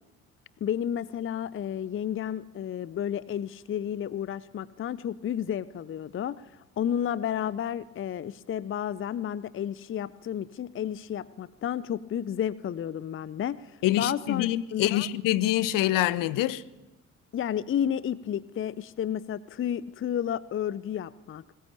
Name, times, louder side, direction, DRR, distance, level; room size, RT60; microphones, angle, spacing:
voice 1, 0.6-6.5 6.8-15.1 17.3-21.4, left 9 dB, 30° left, 0.7 m, -31 dB
voice 2, 13.8-16.6, left 14 dB, 55° left, 1.0 m, -25 dB
21.5 x 19.5 x 8.7 m
figure-of-eight pair, 50°, 40 cm